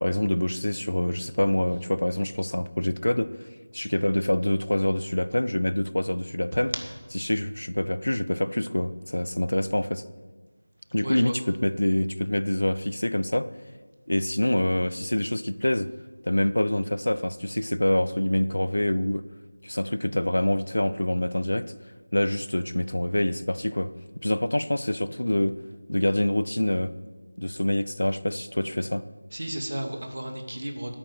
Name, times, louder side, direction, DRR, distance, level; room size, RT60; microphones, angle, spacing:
voice 1, 0.0-3.3 3.7-6.7 7.2-10.0 10.9-13.5 14.1-15.9 16.2-19.2 19.6-21.7 22.1-23.9 24.2-25.6 25.9-26.9 27.4-29.0, left 1 dB, 80° left, 15 dB, 0.7 m, -26 dB
voice 2, 11.0-11.3 29.3-30.9, right 1 dB, 70° right, 4 dB, 2.6 m, -33 dB
11.0 x 8.9 x 9.4 m, 1.4 s
figure-of-eight pair, 170°, 0 cm